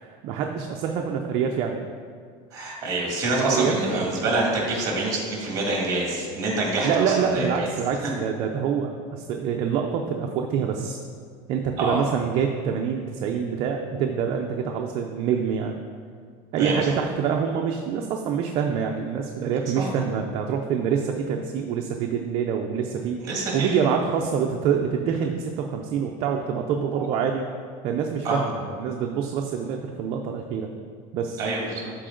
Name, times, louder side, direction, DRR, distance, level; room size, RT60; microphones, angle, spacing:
voice 1, 0.0-1.8 3.4-4.2 6.8-11.0 11.5-15.8 16.5-23.2 23.5-27.5 27.8-30.7 31.1-31.4, right 7 dB, 40° right, 2 dB, 0.5 m, -26 dB
voice 2, 2.5-7.7 11.8-12.0 16.6-16.9 19.8-19.9 23.2-23.8 26.9-27.1 28.2-28.4 31.4-31.9, right 2 dB, 25° right, -2 dB, 1.9 m, -26 dB
12.5 x 4.3 x 3.8 m, 2.1 s
cardioid pair, 175°, 14 cm